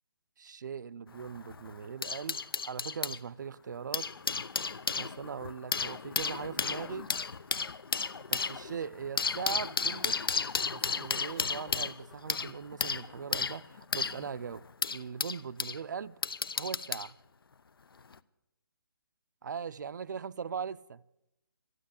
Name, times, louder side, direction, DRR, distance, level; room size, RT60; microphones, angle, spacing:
voice 1, 0.4-4.1 5.0-7.1 8.3-10.2 10.7-16.2 16.6-17.2 19.4-21.0, right 6 dB, 50° right, 0.5 m, -40 dB
sound 1, 1.1-3.2 3.7-15.8 16.2-17.1 18.0-18.2, left 5 dB, 75° left, 0.7 m, -34 dB
13.5 x 9.5 x 9.8 m
hypercardioid pair, 165°, 12 cm